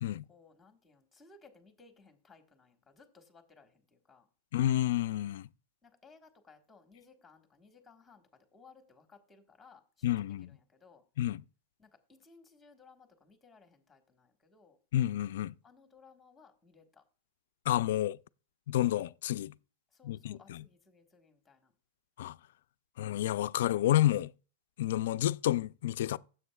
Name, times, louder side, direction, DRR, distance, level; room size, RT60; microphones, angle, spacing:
voice 1, 0.3-4.3 5.8-11.0 11.8-14.8 15.6-17.0 19.9-21.7, left 4 dB, 5° left, 1.4 m, -60 dB
voice 2, 4.5-5.5 10.0-10.5 11.2-11.4 14.9-15.5 17.7-18.2 18.7-19.5 20.0-20.6 22.2-22.4 23.0-24.3 24.8-26.2, left 13 dB, 65° left, 0.3 m, -30 dB
16.0 x 7.6 x 2.3 m
supercardioid pair, 160°, 0 cm